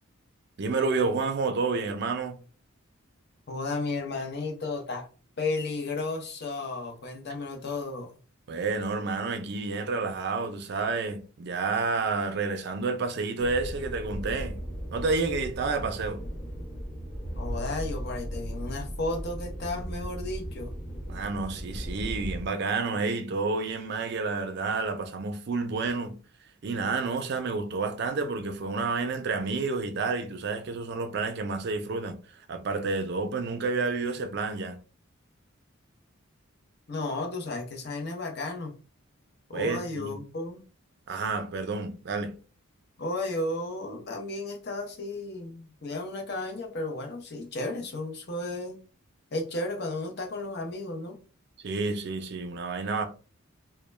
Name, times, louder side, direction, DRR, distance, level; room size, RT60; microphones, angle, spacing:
voice 1, 0.6-2.4 8.5-14.6 14.9-16.2 21.1-26.2 26.6-32.2 32.5-34.8 39.5-40.2 41.1-42.3 51.6-53.0, right 4 dB, 50° right, 0.4 m, -30 dB
voice 2, 3.5-5.1 5.4-8.1 17.3-20.7 36.9-38.7 39.5-40.6 43.0-48.8 49.3-51.2, left 2 dB, 50° left, 0.6 m, -33 dB
sound 1, 13.4-22.5, equal, 75° left, 0.9 m, -37 dB
2.2 x 2.1 x 3.1 m
head